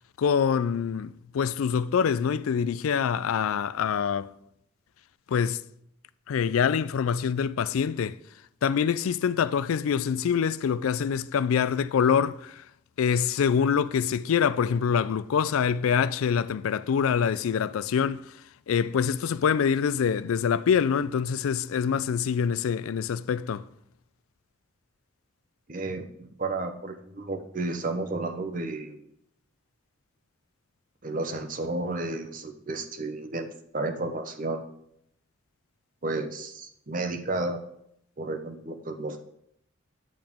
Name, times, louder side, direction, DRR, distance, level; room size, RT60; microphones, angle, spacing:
voice 1, 0.2-4.3 5.3-5.6 6.3-8.2 8.6-12.6 13.0-18.3 18.7-23.6, left 7 dB, 90° left, 0.4 m, -25 dB
voice 2, 25.7-29.1 31.0-33.5 33.7-34.7 36.0-37.6 38.2-39.2, right 2 dB, 40° right, 0.8 m, -32 dB
8.7 x 7.7 x 3.6 m
head